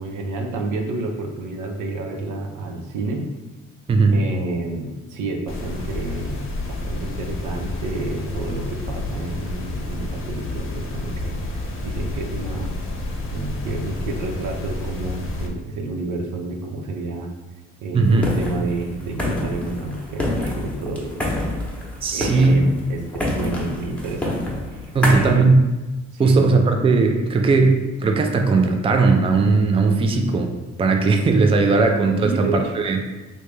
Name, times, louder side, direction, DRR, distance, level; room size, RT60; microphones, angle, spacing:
voice 1, 0.0-3.3 4.1-12.7 13.3-17.3 17.8-21.8 22.1-25.6 26.1-26.6 32.2-32.7, right 2 dB, 80° right, 3 dB, 0.6 m, -30 dB
voice 2, 3.9-4.2 17.9-18.3 22.0-22.7 24.9-25.6 26.2-30.5 30.8-33.0, right 3 dB, 20° right, 4 dB, 0.4 m, -17 dB
sound 1, 5.5-15.5, left 2 dB, 45° left, 0.7 m, -30 dB
sound 2, 18.0-25.4, left 1 dB, 5° left, 0.8 m, -27 dB
3.3 x 2.7 x 3.2 m, 1.1 s
cardioid pair, 90°, 30 cm